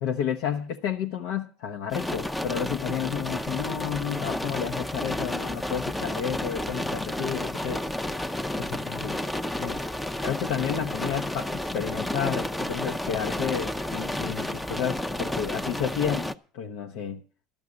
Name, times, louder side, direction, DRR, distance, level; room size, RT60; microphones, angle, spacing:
voice 1, 0.0-8.2 8.6-9.2 9.6-9.8 10.2-16.3 16.5-17.2, left 8 dB, 75° left, 1.0 m, -31 dB
sound 1, 1.9-16.3, left 1 dB, 5° left, 0.6 m, -31 dB
12.5 x 6.4 x 9.6 m
supercardioid pair, 115°, 0 cm